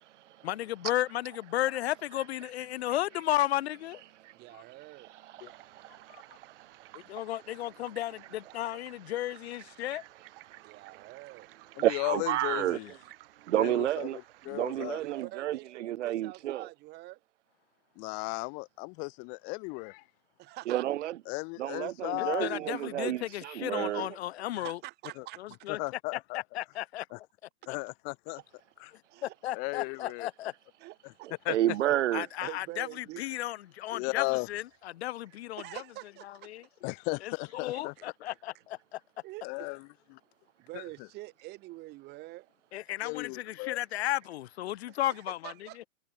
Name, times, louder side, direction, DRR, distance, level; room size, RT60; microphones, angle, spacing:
voice 1, 0.4-4.0 5.4-5.5 6.9-10.0 22.2-24.8 25.4-25.8 26.1-27.3 27.7-27.8 28.9-30.5 32.1-35.8 36.3-36.7 37.2-39.0 42.7-45.8, left 14 dB, 50° left, 1.0 m, -34 dB
voice 2, 4.3-5.1 10.6-11.5 15.0-17.2 20.4-20.8 24.5-25.7 29.1-29.3 30.0-30.1 30.8-31.3 32.4-33.2 35.6-36.5 38.0-38.3 39.2-39.7 40.6-42.5 45.0-45.9, right 19 dB, 25° right, 2.2 m, -46 dB
voice 3, 5.2-7.0 10.5-10.8 11.8-12.8 13.4-14.2 14.5-16.7 20.7-21.2 21.6-24.1 31.5-32.3, right 13 dB, 60° right, 0.9 m, -31 dB
sound 1, 5.4-15.3, right 18 dB, 40° right, 2.7 m, -55 dB
voice 4, 11.8-12.9 13.6-15.0 18.0-20.0 21.3-22.6 25.2-25.3 25.7-26.4 27.1-27.2 27.7-28.4 28.8-28.9 29.5-30.3 31.0-31.1 31.4-31.6 33.9-34.5 36.8-37.9 39.4-40.2 40.7-40.8 43.0-43.8, left 34 dB, 20° left, 0.7 m, -35 dB
hypercardioid pair, 150°, 41 cm